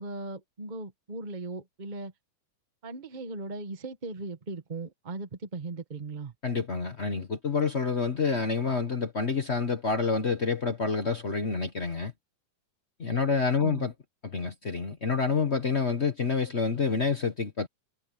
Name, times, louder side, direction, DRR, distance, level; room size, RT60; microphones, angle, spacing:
voice 1, 0.0-2.1 2.8-6.3 13.6-13.9, right 3 dB, 25° right, 0.9 m, -38 dB
voice 2, 6.4-12.1 13.0-13.9 14.2-17.7, left 5 dB, 60° left, 0.7 m, -28 dB
omnidirectional pair, 3.4 m